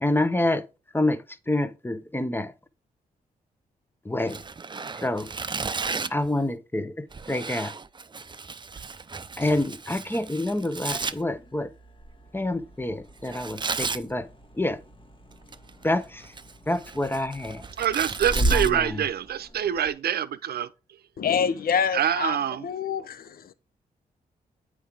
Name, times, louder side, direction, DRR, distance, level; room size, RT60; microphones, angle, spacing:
voice 1, 0.0-0.6 0.9-2.5 4.0-4.4 5.0-5.3 6.1-7.7 9.4-11.7 12.3-14.3 14.6-14.8 15.8-16.3 16.7-17.6 18.4-19.0, left 1 dB, 10° left, 0.9 m, -27 dB
Tearing, 4.2-6.3 7.1-11.1 13.3-14.0 15.3-15.8 16.2-18.7, right 4 dB, 25° right, 0.5 m, -34 dB
sound 1, 10.8-19.9, right 1 dB, 30° left, 1.6 m, -35 dB
voice 2, 17.8-20.7 21.9-22.7, right 9 dB, 70° right, 0.7 m, -25 dB
voice 3, 21.2-23.5, left 7 dB, 60° left, 0.7 m, -27 dB
8.4 x 4.8 x 3.5 m
supercardioid pair, 55°, 17 cm